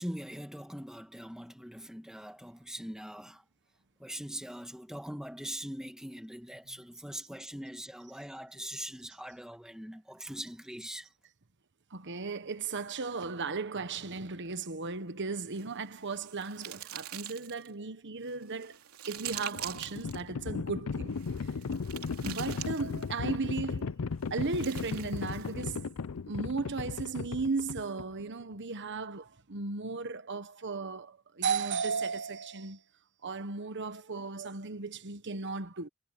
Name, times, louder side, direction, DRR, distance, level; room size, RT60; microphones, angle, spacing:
voice 1, 0.0-3.4 4.0-11.1, equal, 5° right, 1.6 m, -42 dB
voice 2, 11.9-18.8 19.1-21.1 22.2-25.9 26.3-32.8 33.2-35.9, right 4 dB, 55° right, 1.2 m, -35 dB
sound 1, 15.4-17.7 18.3-20.2 21.1-23.2 24.2-25.8, right 12 dB, 90° right, 3.0 m, -44 dB
Livestock farm animals working animals, 19.1-28.2, left 5 dB, 75° left, 0.6 m, -36 dB
head